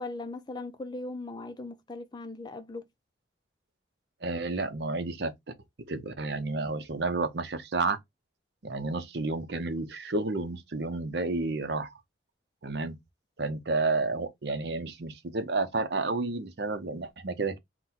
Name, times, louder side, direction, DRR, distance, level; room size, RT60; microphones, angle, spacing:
voice 1, 0.0-2.8, left 2 dB, 25° left, 0.4 m, -39 dB
voice 2, 4.2-5.3 5.9-8.0 8.6-11.9 12.6-13.0 13.4-17.6, right 3 dB, 60° right, 0.7 m, -31 dB
4.0 x 2.2 x 4.2 m
head